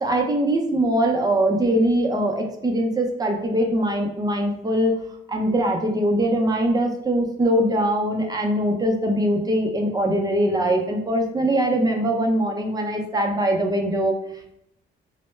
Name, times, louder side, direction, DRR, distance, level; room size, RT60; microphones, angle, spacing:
voice 1, 0.0-4.9 5.3-14.1, right 1 dB, 20° right, 2 dB, 0.5 m, -22 dB
2.0 x 2.0 x 3.2 m, 0.76 s
cardioid pair, 90°, 20 cm